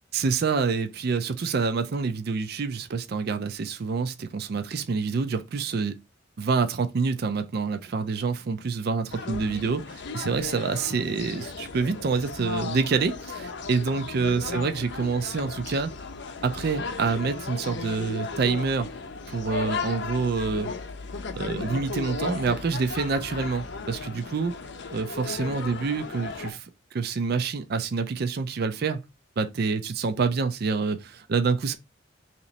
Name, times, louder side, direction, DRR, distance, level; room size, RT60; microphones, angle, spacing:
voice 1, 0.1-5.9 6.4-15.9 16.4-18.9 19.3-20.7 21.4-24.5 24.9-29.0 29.4-31.8, right 4 dB, 55° right, 0.4 m, -27 dB
sound 1, 9.1-26.5, left 4 dB, 60° left, 0.6 m, -35 dB
3.1 x 2.9 x 3.9 m
head